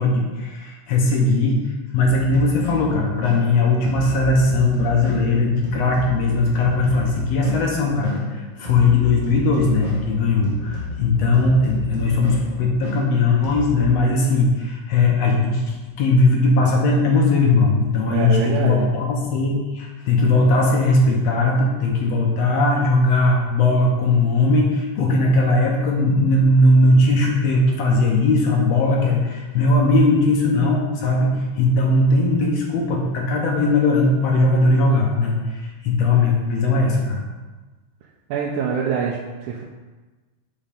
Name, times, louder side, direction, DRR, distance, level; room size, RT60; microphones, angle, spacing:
voice 1, 0.0-37.2, left 2 dB, 70° left, -1 dB, 1.8 m, -19 dB
sound 1, 2.1-13.9, left 2 dB, 60° right, 0.5 m, -32 dB
voice 2, 18.0-18.9 38.3-39.6, right 6 dB, 80° right, -2 dB, 2.0 m, -25 dB
5.7 x 5.2 x 5.2 m, 1.2 s
omnidirectional pair, 3.6 m